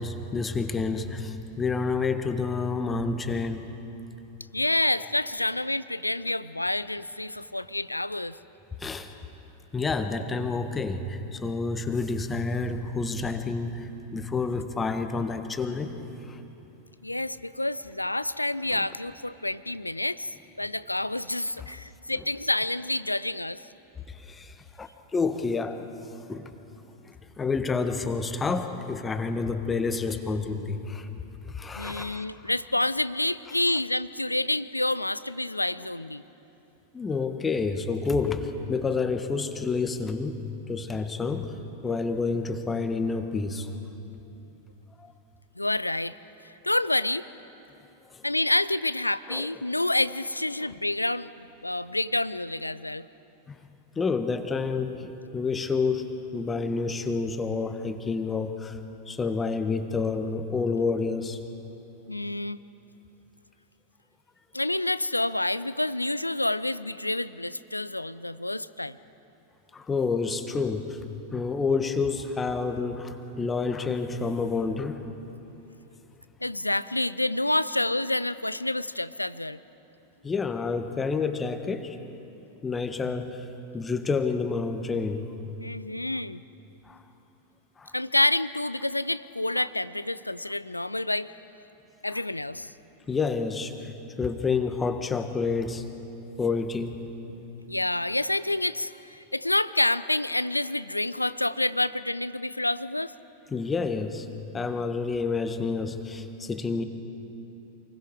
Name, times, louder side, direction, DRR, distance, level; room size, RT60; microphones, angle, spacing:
voice 1, 0.0-3.7 8.8-9.1 9.7-16.0 16.3-16.4 18.7-18.8 22.2-22.3 24.1-25.9 26.3-26.5 27.0-31.1 31.5-32.3 36.9-40.4 40.7-41.5 41.8-43.7 45.0-45.1 48.1-48.2 49.3-49.5 53.5-53.6 53.9-58.8 59.1-61.4 69.7-71.0 71.3-75.0 80.2-82.0 82.6-83.5 83.7-85.3 86.9-87.0 87.8-87.9 93.1-93.9 94.2-95.8 96.4-97.0 103.5-104.3 104.5-106.8, left 4 dB, 15° left, 8 dB, 1.4 m, -29 dB
voice 2, 4.5-8.4 17.0-23.6 31.8-36.2 45.6-46.1 46.6-47.3 48.2-53.1 62.1-62.6 64.5-69.0 76.4-79.6 85.6-86.4 87.9-91.3 92.0-92.7 97.3-97.4 97.7-103.1, left 1 dB, 85° left, 16 dB, 0.5 m, -28 dB
27.5 x 20.5 x 4.8 m, 3.0 s
figure-of-eight pair, 90°, 0 cm